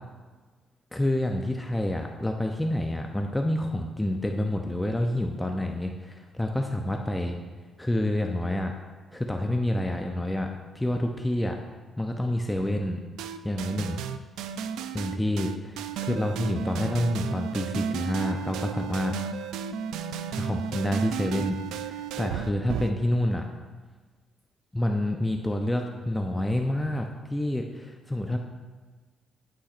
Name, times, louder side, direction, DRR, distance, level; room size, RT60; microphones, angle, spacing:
voice 1, 0.9-7.4 7.8-8.7 9.1-10.5 10.7-11.6 12.0-13.0 13.4-14.0 14.9-19.1 20.3-23.5 24.7-28.4, left 1 dB, 10° left, 3 dB, 0.5 m, -28 dB
sound 1, 13.2-23.1, right 7 dB, 90° right, 0.3 m, -33 dB
11.5 x 5.7 x 2.5 m, 1.4 s
cardioid pair, 90°, 0 cm